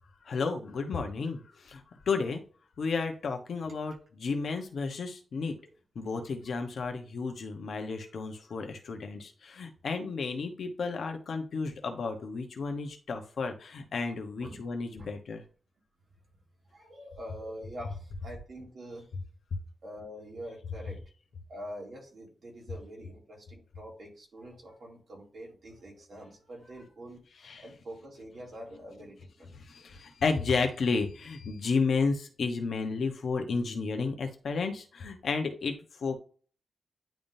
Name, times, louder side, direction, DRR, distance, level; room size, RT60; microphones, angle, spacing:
voice 1, 0.2-2.4 2.8-5.6 5.9-15.4 27.4-27.6 29.5-36.2, left 4 dB, 75° left, 4 dB, 1.1 m, -32 dB
voice 2, 16.7-19.1 19.8-21.0 21.5-27.2 27.6-29.5 29.8-29.9, equal, 60° right, -2 dB, 2.6 m, -45 dB
10.5 x 3.6 x 2.7 m, 0.40 s
wide cardioid pair, 135°, 0 cm